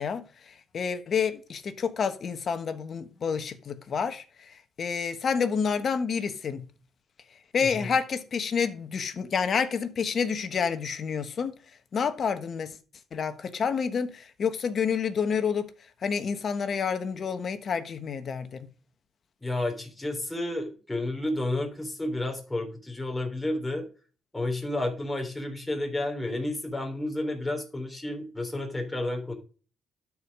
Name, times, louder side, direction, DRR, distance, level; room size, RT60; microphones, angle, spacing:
voice 1, 0.0-6.7 7.5-11.6 11.9-12.7 13.1-15.7 16.0-18.7, left 6 dB, 50° left, 1.3 m, -29 dB
voice 2, 19.4-23.8 24.3-29.3, left 1 dB, 15° left, 3.6 m, -31 dB
12.0 x 4.9 x 4.8 m
cardioid pair, 90°, 0 cm